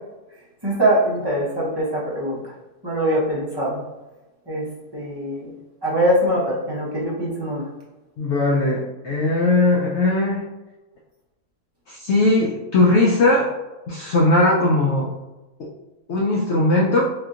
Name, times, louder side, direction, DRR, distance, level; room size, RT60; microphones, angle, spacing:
voice 1, 0.6-2.4 2.8-3.8 4.5-5.5 5.8-7.6, right 1 dB, 20° right, -7 dB, 0.7 m, -22 dB
voice 2, 8.2-10.4 11.9-13.5 13.9-15.1 15.6-15.7 16.1-17.0, left 2 dB, 75° left, -2 dB, 0.6 m, -19 dB
3.5 x 2.7 x 2.4 m, 1.1 s
omnidirectional pair, 1.7 m